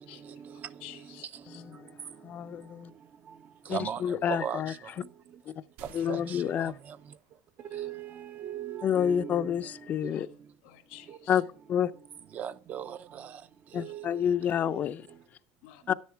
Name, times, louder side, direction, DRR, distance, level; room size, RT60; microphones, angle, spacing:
voice 1, 0.2-0.7 3.7-4.8 6.1-7.0 7.7-9.5 10.0-10.1 11.1-11.2 12.3-13.4 13.7-14.2 14.6-14.9, right 9 dB, 30° right, 0.5 m, -38 dB
voice 2, 0.8-1.6 10.1-10.3 10.6-11.4 15.6-15.8, left 16 dB, 85° left, 1.7 m, -50 dB
voice 3, 1.6-1.9 2.2-2.9 3.7-4.7 5.5-5.6 5.9-6.7 8.8-10.3 11.3-11.9 13.7-15.0 15.9-16.0, left 9 dB, 30° left, 0.5 m, -29 dB
sound 1, 5.8-7.7, right 7 dB, 90° right, 2.6 m, -56 dB
13.5 x 10.5 x 4.4 m
cardioid pair, 170°, 6 cm